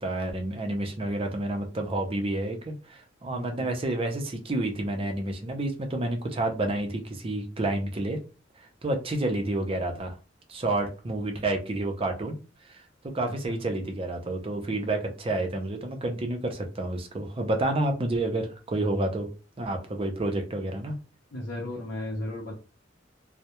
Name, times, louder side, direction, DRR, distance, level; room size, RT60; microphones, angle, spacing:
voice 1, 0.0-8.2 8.8-10.2 10.5-12.4 12.7-12.8 13.1-19.3 19.6-20.9, right 2 dB, 30° right, 4 dB, 0.5 m, -29 dB
voice 2, 3.3-3.7 13.5-13.6 21.3-22.5, left 1 dB, 65° left, -4 dB, 0.6 m, -35 dB
2.2 x 2.0 x 2.8 m, 0.33 s
head